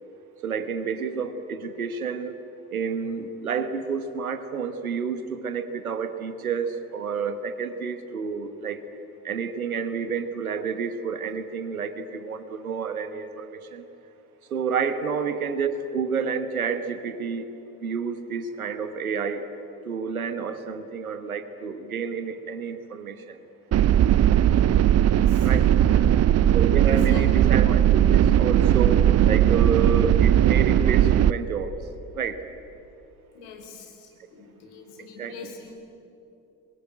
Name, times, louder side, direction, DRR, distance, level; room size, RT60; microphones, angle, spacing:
voice 1, 0.4-2.4 2.7-8.8 9.2-13.8 14.5-17.5 17.8-19.5 19.8-23.4 25.4-25.7 26.5-31.7 32.1-32.4 35.2-35.3, right 6 dB, 85° right, 11 dB, 1.3 m, -29 dB
sound 1, 23.7-31.3, right 11 dB, 35° right, 0.7 m, -18 dB
voice 2, 25.0-26.1 26.8-27.3 33.3-35.7, left 5 dB, 70° left, 3 dB, 4.5 m, -45 dB
25.5 x 22.0 x 10.0 m, 2.9 s
figure-of-eight pair, 50°, 42 cm